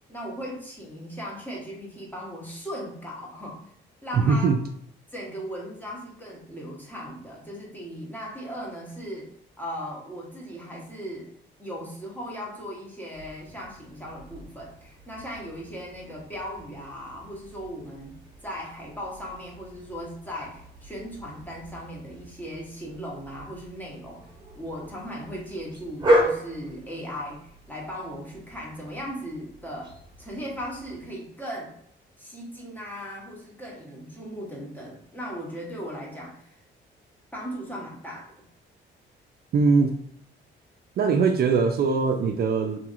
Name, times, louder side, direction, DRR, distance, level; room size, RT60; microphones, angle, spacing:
voice 1, 0.1-3.6 4.0-4.6 5.1-9.3 9.6-11.3 11.6-31.8 32.2-36.6 37.3-38.3, equal, 10° left, -3 dB, 1.1 m, -37 dB
voice 2, 4.1-4.6 39.5-40.0 41.0-42.8, right 4 dB, 50° right, 4 dB, 0.4 m, -21 dB
sound 1, 13.1-31.1, equal, 25° right, 1.2 m, -34 dB
2.8 x 2.7 x 2.5 m, 0.70 s
cardioid pair, 90°, 20 cm